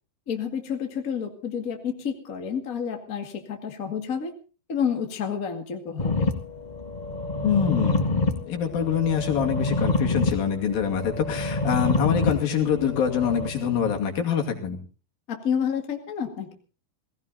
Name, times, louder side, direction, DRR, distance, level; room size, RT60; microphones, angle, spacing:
voice 1, 0.3-4.3 4.7-6.3 15.3-16.5, left 7 dB, 30° left, 4 dB, 1.9 m, -29 dB
sound 1, 6.0-14.0, left 3 dB, 60° left, 0.4 m, -27 dB
voice 2, 7.4-14.8, left 8 dB, 80° left, 2 dB, 4.2 m, -25 dB
18.5 x 17.0 x 4.0 m, 0.36 s
omnidirectional pair, 4.1 m